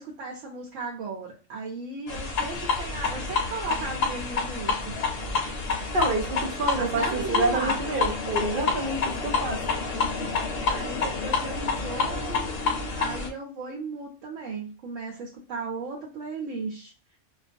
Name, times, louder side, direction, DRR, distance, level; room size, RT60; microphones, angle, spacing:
voice 1, 0.0-4.9 6.8-7.7 10.7-12.4 13.0-16.9, right 3 dB, 85° right, -3 dB, 1.0 m, -35 dB
sound 1, 2.1-13.3, left 4 dB, 60° left, 0.8 m, -28 dB
voice 2, 5.9-9.6, right 2 dB, 55° right, 1 dB, 0.7 m, -28 dB
2.4 x 2.2 x 2.5 m, 0.32 s
omnidirectional pair, 1.3 m